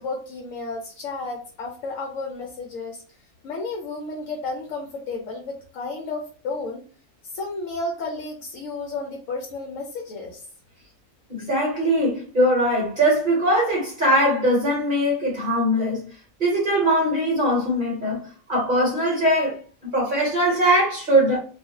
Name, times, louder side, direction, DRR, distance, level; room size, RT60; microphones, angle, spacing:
voice 1, 0.0-3.0 3.4-6.8 7.3-10.4, left 3 dB, 70° left, 1.0 m, -32 dB
voice 2, 11.3-16.1 16.4-18.2 18.5-21.4, right 1 dB, 40° right, 1.1 m, -21 dB
2.5 x 2.4 x 2.7 m
omnidirectional pair, 1.4 m